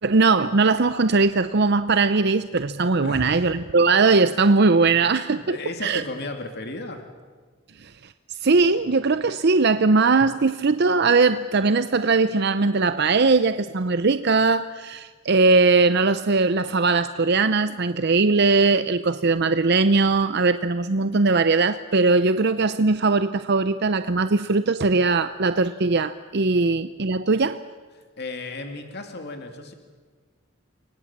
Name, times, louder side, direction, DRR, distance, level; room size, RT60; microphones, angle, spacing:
voice 1, 0.0-5.6 5.8-6.0 7.8-7.9 8.4-27.6, right 3 dB, 55° right, 12 dB, 0.7 m, -20 dB
voice 2, 3.0-3.4 4.9-7.0 26.6-26.7 27.9-29.7, left 2 dB, 55° left, 4 dB, 2.8 m, -35 dB
29.5 x 24.5 x 7.4 m, 1.5 s
head